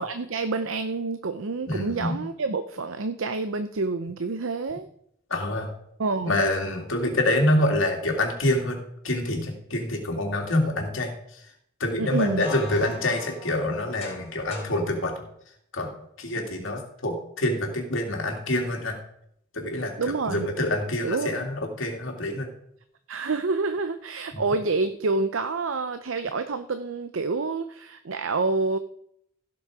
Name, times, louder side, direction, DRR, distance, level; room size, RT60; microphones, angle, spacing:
voice 1, 0.0-4.9 6.0-6.4 12.0-12.4 20.0-20.5 21.0-21.5 23.1-28.8, right 3 dB, 70° right, 10 dB, 0.6 m, -28 dB
voice 2, 1.7-2.2 5.3-5.7 6.2-8.8 9.0-11.1 11.8-15.1 15.7-15.9 16.2-18.9 19.5-19.9 20.3-22.5, left 1 dB, 65° left, 2 dB, 2.6 m, -26 dB
sound 1, 12.1-14.8, left 3 dB, 30° left, 3.7 m, -41 dB
16.0 x 6.3 x 4.8 m, 0.72 s
head